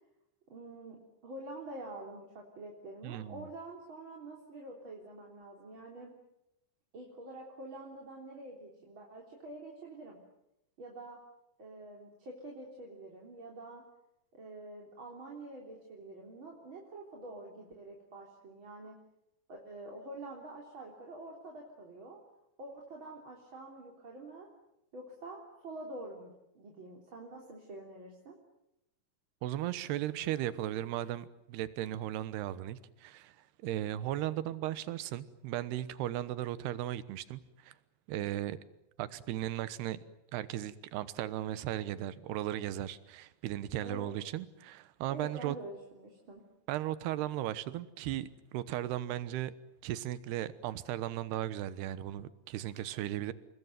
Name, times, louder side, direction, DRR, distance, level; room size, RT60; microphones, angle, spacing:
voice 1, 0.5-6.2 6.9-10.2 10.8-11.2 11.6-13.8 14.3-19.0 19.5-22.2 22.6-24.5 24.9-28.4 43.8-44.1 45.1-46.4, right 2 dB, 30° right, -1 dB, 4.0 m, -47 dB
voice 2, 3.0-3.5 29.4-33.3 33.6-37.7 38.1-38.6 39.0-40.0 40.3-45.6 46.7-49.5 49.8-53.3, right 13 dB, 75° right, 15 dB, 3.1 m, -36 dB
29.0 x 21.5 x 9.4 m, 0.84 s
omnidirectional pair, 4.9 m